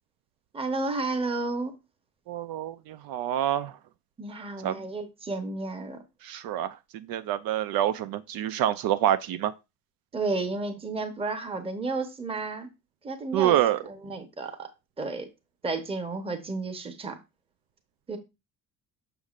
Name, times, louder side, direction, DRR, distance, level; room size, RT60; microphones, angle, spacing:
voice 1, 0.5-1.7 4.2-6.0 10.1-12.7 13.0-14.7 15.0-15.3 15.6-17.2 18.1-18.2, right 3 dB, 15° right, 0.9 m, -32 dB
voice 2, 2.3-3.7 4.6-4.7 6.2-6.7 7.1-9.5 13.3-13.8, right 12 dB, 80° right, 0.5 m, -26 dB
6.9 x 6.4 x 2.4 m
cardioid pair, 140°, 35 cm